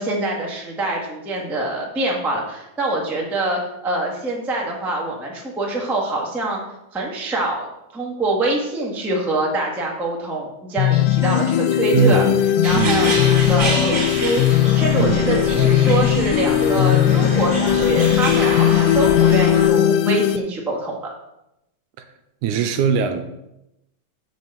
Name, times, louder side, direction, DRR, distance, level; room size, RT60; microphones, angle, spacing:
voice 1, 0.0-6.6 6.9-7.7 7.9-12.3 12.6-21.1, right 2 dB, ahead, -2 dB, 0.6 m, -25 dB
sound 1, 10.8-20.4, left 11 dB, 85° left, 2.2 m, -18 dB
voice 2, 11.9-12.4 12.7-13.2 15.0-15.4 22.0-22.1 22.4-23.2, right 6 dB, 80° right, 7 dB, 2.0 m, -20 dB
sound 2, 12.6-19.7, right 2 dB, 40° right, 1.8 m, -27 dB
7.8 x 5.1 x 7.0 m, 0.88 s
omnidirectional pair, 3.7 m